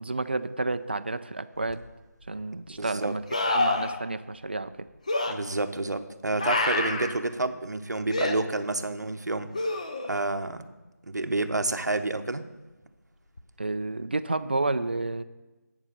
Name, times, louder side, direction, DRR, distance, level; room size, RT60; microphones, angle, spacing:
voice 1, 0.0-1.8 2.3-4.9 13.6-15.2, right 2 dB, 35° right, 12 dB, 0.4 m, -30 dB
sound 1, 1.7-1.8 3.3-4.0 5.1-5.3 6.4-7.1 8.1-8.4 9.5-10.2 13.4-13.5, left 2 dB, 25° left, 0.5 m, -27 dB
voice 2, 2.7-3.2 5.3-9.5 10.1-10.6 11.0-12.4, right 2 dB, 75° right, 8 dB, 0.9 m, -29 dB
8.5 x 7.3 x 6.6 m, 1.1 s
figure-of-eight pair, 170°, 10 cm